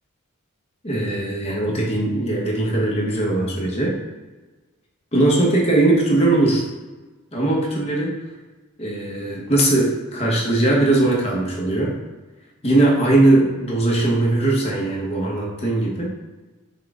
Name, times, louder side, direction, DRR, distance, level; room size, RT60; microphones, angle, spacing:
voice 1, 0.8-4.0 5.1-6.6 7.3-8.2 8.8-12.0 12.6-16.1, right 2 dB, 30° left, -3 dB, 1.0 m, -19 dB
5.8 x 2.3 x 3.5 m, 1.2 s
head